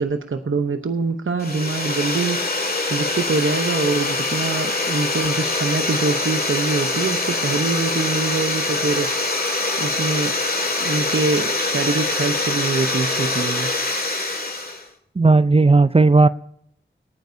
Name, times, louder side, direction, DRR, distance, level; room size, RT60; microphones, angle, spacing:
voice 1, 0.0-9.1 9.5-10.3 10.8-13.7, right 3 dB, 80° right, 7 dB, 0.8 m, -24 dB
sound 1, 1.4-14.9, left 2 dB, 50° left, 2.0 m, -24 dB
voice 2, 15.2-16.3, right 3 dB, 30° right, 15 dB, 0.4 m, -14 dB
24.0 x 9.4 x 2.7 m, 0.71 s
wide cardioid pair, 50°, 20 cm